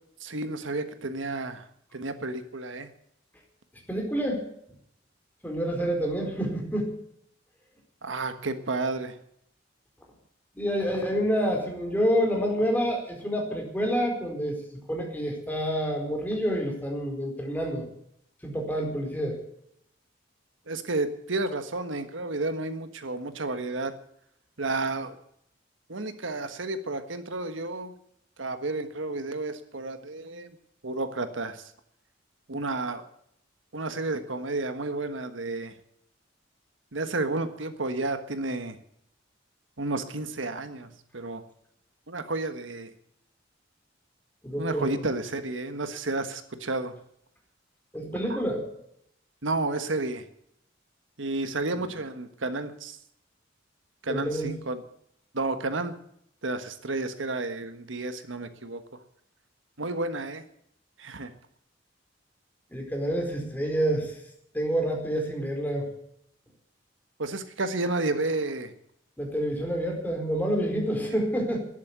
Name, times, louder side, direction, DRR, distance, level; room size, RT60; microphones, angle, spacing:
voice 1, 0.2-1.6 1.9-2.9 8.0-9.2 20.7-23.9 24.6-25.2 25.9-27.9 28.4-30.5 30.8-31.6 32.5-33.0 33.7-35.7 36.9-38.8 39.8-41.4 42.1-42.9 44.6-46.9 48.3-48.4 49.4-50.2 51.2-53.0 54.0-54.8 55.3-55.9 56.4-58.8 59.8-60.4 61.0-61.3 67.2-68.7, right 2 dB, 85° right, 10 dB, 1.5 m, -31 dB
voice 2, 3.9-4.4 5.4-7.0 10.5-14.6 14.9-17.9 18.4-19.4 44.4-45.1 47.9-48.7 54.1-54.5 62.7-64.1 64.5-65.9 69.2-71.6, equal, 10° left, 1 dB, 4.4 m, -28 dB
13.0 x 11.5 x 8.2 m, 0.71 s
head